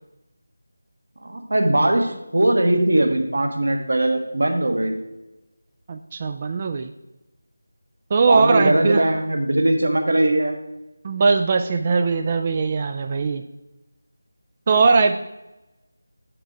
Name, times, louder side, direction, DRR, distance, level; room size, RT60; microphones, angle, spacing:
voice 1, 1.2-5.0 8.2-10.6, right 1 dB, 60° right, 5 dB, 1.3 m, -20 dB
voice 2, 5.9-6.9 8.1-9.0 11.0-13.4 14.7-15.2, right 4 dB, 30° right, 7 dB, 0.3 m, -20 dB
8.8 x 5.9 x 4.7 m, 0.98 s
figure-of-eight pair, 165°, 0 cm